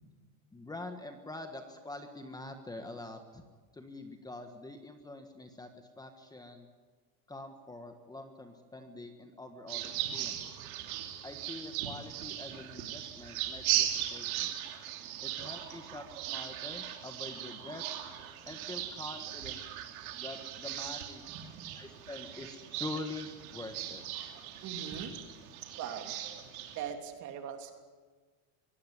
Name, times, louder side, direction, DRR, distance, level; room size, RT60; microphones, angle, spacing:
voice 1, 0.5-3.4 3.7-6.7 7.3-10.4 11.2-14.5 15.2-18.0 18.5-19.6 20.1-21.2 21.7-24.0, left 2 dB, 10° left, 6 dB, 1.5 m, -45 dB
sound 1, 9.7-26.9, right 12 dB, 90° right, 3.1 m, -38 dB
voice 2, 21.3-21.7 24.6-25.1 25.7-26.1 26.7-27.7, right 8 dB, 45° right, 5 dB, 3.2 m, -41 dB
23.0 x 17.0 x 9.8 m, 1.4 s
supercardioid pair, 145°, 41 cm